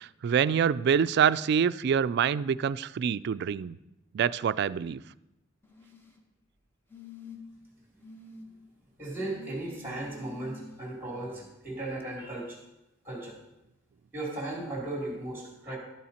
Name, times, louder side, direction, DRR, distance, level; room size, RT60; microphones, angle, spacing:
voice 1, 0.0-3.8 4.1-5.0, right 7 dB, 55° right, 17 dB, 0.3 m, -26 dB
sound 1, 5.6-6.2 6.9-7.6 8.0-8.4 9.2-10.8 12.0-12.1, left 4 dB, 10° left, 1.1 m, -48 dB
voice 2, 9.0-12.6 13.0-13.4 14.1-15.8, right 2 dB, 10° right, -2 dB, 3.1 m, -36 dB
12.5 x 8.5 x 4.3 m, 0.90 s
head